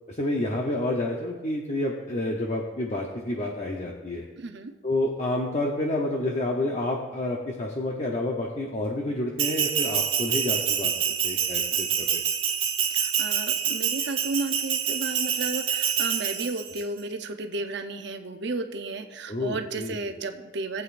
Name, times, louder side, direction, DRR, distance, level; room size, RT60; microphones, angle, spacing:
voice 1, 0.1-4.3 4.8-10.9 11.2-12.2 19.3-20.0, left 1 dB, 35° left, 0 dB, 0.8 m, -29 dB
voice 2, 4.4-4.7 12.9-20.8, right 3 dB, 60° right, 6 dB, 0.7 m, -33 dB
Bell, 9.4-16.8, right 8 dB, 80° right, 1.3 m, -26 dB
18.0 x 8.2 x 2.6 m, 1.2 s
head